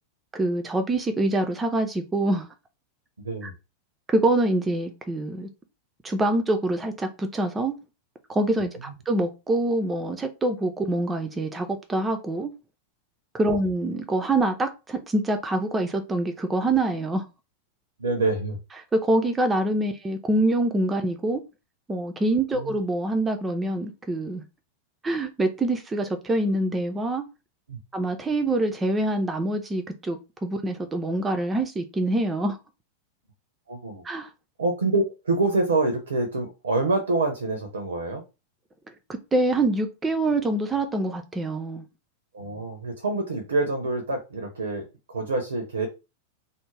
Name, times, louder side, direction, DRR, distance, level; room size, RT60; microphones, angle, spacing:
voice 1, 0.3-2.5 3.4-3.5 4.1-5.5 6.0-7.7 8.3-12.5 13.3-17.3 18.9-21.4 21.9-24.4 25.0-27.2 27.9-32.6 34.0-34.3 39.1-41.9, right 2 dB, 15° right, 0.4 m, -25 dB
voice 2, 18.0-18.6 22.6-22.8 27.7-27.8 33.7-34.0 34.6-38.2 42.3-45.9, right 2 dB, 70° right, 0.5 m, -26 dB
2.4 x 2.0 x 3.2 m
figure-of-eight pair, 90°, 0 cm